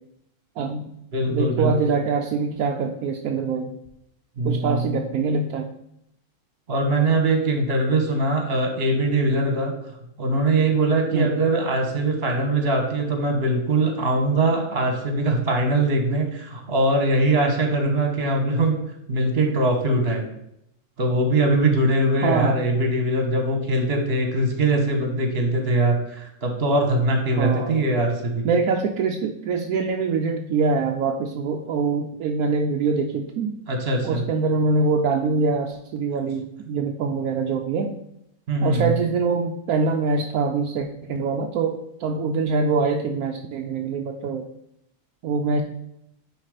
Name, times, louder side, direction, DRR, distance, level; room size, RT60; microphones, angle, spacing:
voice 1, 0.6-0.9 1.3-3.7 4.4-5.7 11.1-11.4 22.2-22.7 24.8-24.9 27.3-27.8 28.4-33.6 34.0-38.0 38.6-44.5 45.2-45.6, right 4 dB, 75° right, 3 dB, 1.1 m, -24 dB
voice 2, 1.1-1.9 4.4-5.0 6.7-9.7 10.2-18.8 19.1-20.3 21.0-28.5 33.7-34.2 38.5-38.9, right 2 dB, 40° right, 4 dB, 1.5 m, -22 dB
9.7 x 3.3 x 4.9 m, 0.78 s
omnidirectional pair, 1.6 m